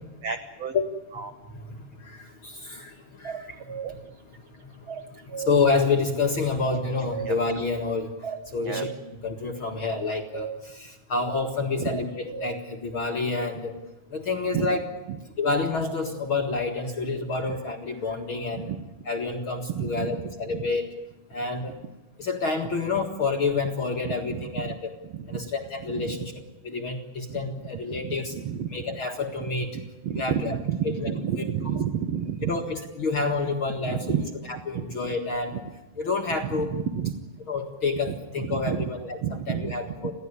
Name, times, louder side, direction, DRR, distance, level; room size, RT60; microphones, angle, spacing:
voice 1, 0.2-0.7 1.1-1.3 3.8-3.9 7.2-7.3 8.6-8.8 11.8-11.9 14.5-14.7 15.1-15.2 18.7-18.8 19.7-20.2 20.5-20.6 24.0-24.8 25.0-25.5 25.9-26.3 27.3-27.4 27.9-28.7 29.7-32.5 33.8-34.2 34.6-35.1 35.5-35.6 36.4-37.2 38.1-38.9 39.2-40.1, right 8 dB, 80° right, 8 dB, 1.4 m, -31 dB
voice 2, 1.5-4.0 4.6-8.1 8.5-8.9 9.2-13.8 14.1-14.8 15.4-18.7 19.1-20.9 21.3-21.8 22.2-24.9 25.3-26.3 26.6-28.3 28.7-29.7 30.2-30.6 31.0-31.4 32.5-34.0 34.5-35.6 36.0-36.7 37.5-40.1, left 4 dB, 45° left, 2 dB, 1.8 m, -28 dB
sound 1, 3.2-3.9 4.9-5.5 6.6-7.4 8.2-9.0 9.9-10.6 11.9-12.5 15.8-16.4, right 7 dB, 60° right, 1.0 m, -35 dB
27.5 x 16.5 x 9.7 m, 1.0 s
omnidirectional pair, 4.6 m